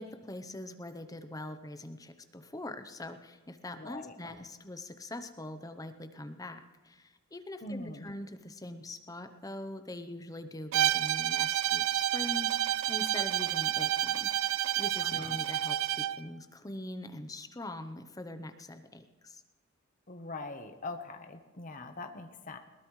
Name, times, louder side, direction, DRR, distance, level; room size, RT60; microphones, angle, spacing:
voice 1, 0.0-19.4, left 1 dB, 15° left, 8 dB, 0.8 m, -43 dB
voice 2, 3.7-4.3 7.6-8.1 15.0-15.4 20.1-22.6, left 2 dB, 40° left, 6 dB, 1.0 m, -42 dB
Bowed string instrument, 10.7-16.2, right 12 dB, 75° right, 0.4 m, -29 dB
21.0 x 18.5 x 3.2 m, 1.3 s
head